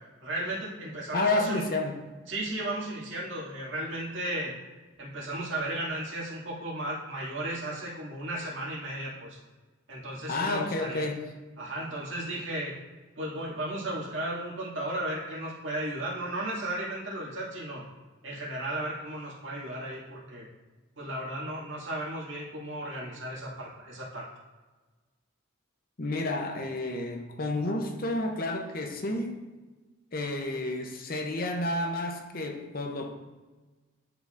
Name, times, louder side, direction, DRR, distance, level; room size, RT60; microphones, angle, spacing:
voice 1, 0.2-1.6 2.3-4.5 5.0-9.4 9.9-11.1 11.6-12.8 13.2-17.8 18.2-20.5 21.0-24.3, right 1 dB, 65° right, 2.2 m, -35 dB
voice 2, 1.1-2.0 10.3-11.3 26.0-29.4 30.1-33.1, left 2 dB, 45° left, 0.7 m, -30 dB
11.0 x 4.9 x 2.5 m
head